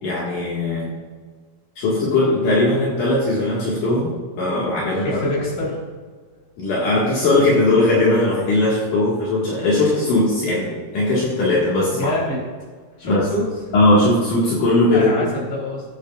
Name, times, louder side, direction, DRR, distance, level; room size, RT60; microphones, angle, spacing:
voice 1, 0.0-0.9 1.8-5.2 6.6-12.1 13.0-13.2 13.7-15.3, left 2 dB, 65° left, -6 dB, 3.2 m, -19 dB
voice 2, 4.9-5.8 11.9-12.4 13.0-13.5 14.9-15.8, left 1 dB, 30° left, -5 dB, 4.2 m, -25 dB
20.0 x 8.6 x 2.4 m, 1.5 s
omnidirectional pair, 4.1 m